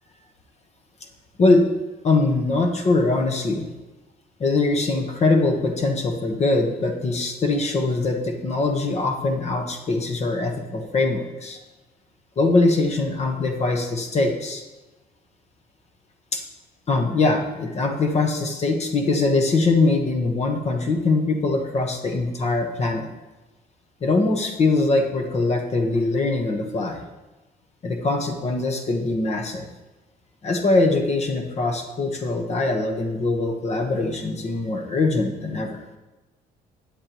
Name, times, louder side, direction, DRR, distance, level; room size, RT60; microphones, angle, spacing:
voice 1, 2.0-3.7 4.4-11.6 12.4-14.6 16.3-16.4 16.9-23.1 24.0-27.0 27.8-29.7 30.4-35.8, left 3 dB, 40° left, 4 dB, 1.3 m, -22 dB
13.0 x 8.8 x 3.1 m, 1.1 s
cardioid pair, 110°, 17 cm